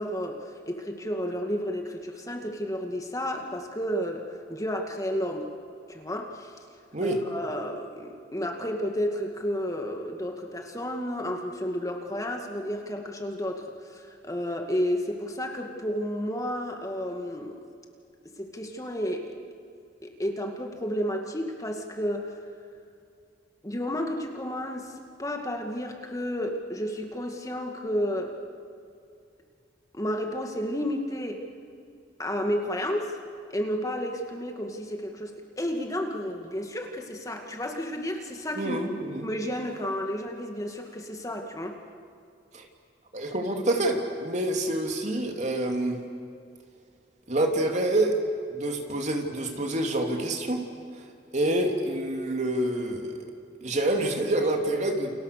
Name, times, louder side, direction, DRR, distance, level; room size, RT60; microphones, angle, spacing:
voice 1, 0.0-5.5 5.9-6.5 7.0-17.6 18.4-19.4 20.0-22.3 23.6-24.9 25.2-28.3 29.9-31.4 32.2-33.2 33.5-38.8 39.2-41.8, equal, 20° left, 3 dB, 2.2 m, -31 dB
voice 2, 38.5-39.3 42.5-42.7 43.1-46.0 47.3-48.2 48.5-50.6 51.3-53.3 53.6-55.1, right 1 dB, 40° right, 3 dB, 3.1 m, -27 dB
29.5 x 29.5 x 6.8 m, 2.4 s
head